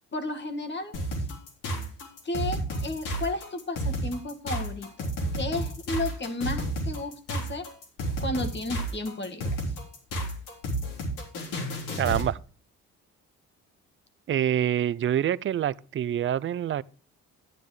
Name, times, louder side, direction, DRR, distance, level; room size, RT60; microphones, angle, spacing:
voice 1, 0.1-0.9 2.2-7.7 8.2-9.6, left 2 dB, 35° left, 1.7 m, -33 dB
sound 1, 0.9-12.3, right 1 dB, 85° left, 3.6 m, -31 dB
voice 2, 12.0-12.4 14.3-16.8, right 10 dB, 40° right, 0.5 m, -26 dB
12.0 x 9.4 x 3.1 m
cardioid pair, 85°, 31 cm